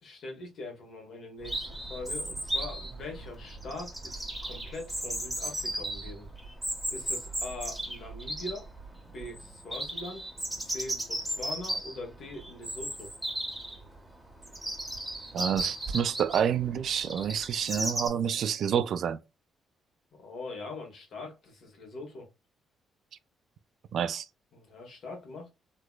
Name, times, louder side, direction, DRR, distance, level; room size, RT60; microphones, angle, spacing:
voice 1, 0.0-6.3 6.9-8.7 9.1-10.3 10.6-13.1 20.2-22.3 24.5-25.5, left 2 dB, 60° left, 1.7 m, -42 dB
Chirp tweet, 1.4-18.1, right 1 dB, 5° right, 1.5 m, -36 dB
voice 2, 15.3-19.2 23.9-24.2, right 8 dB, 65° right, 0.4 m, -28 dB
3.3 x 2.9 x 2.3 m
cardioid pair, 90°, 0 cm